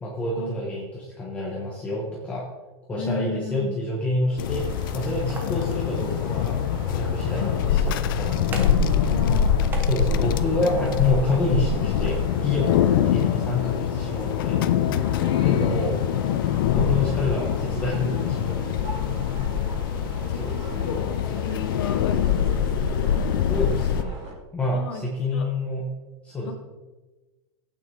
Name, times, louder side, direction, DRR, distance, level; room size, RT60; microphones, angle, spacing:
voice 1, 0.0-2.5 2.9-4.7 4.9-6.6 6.9-8.6 9.9-12.2 12.4-14.6 15.4-16.0 16.6-18.9 20.4-20.8 23.5-24.1 24.5-25.9 26.2-26.5, left 2 dB, 10° left, -4 dB, 1.2 m, -28 dB
voice 2, 3.0-3.8 7.3-7.6 9.0-9.6 12.8-13.0 15.2-15.9 20.3-23.1 24.7-25.5 26.4-26.5, left 5 dB, 70° left, 2 dB, 2.2 m, -35 dB
sound 1, 4.4-24.0, left 8 dB, 50° left, 0.5 m, -24 dB
sound 2, 4.4-24.3, right 2 dB, 30° right, 3.4 m, -40 dB
sound 3, 5.1-6.6 7.7-8.9 9.2-11.5 11.9-13.3, right 2 dB, 15° right, 1.0 m, -40 dB
14.5 x 9.0 x 3.4 m, 1.2 s
supercardioid pair, 175°, 14 cm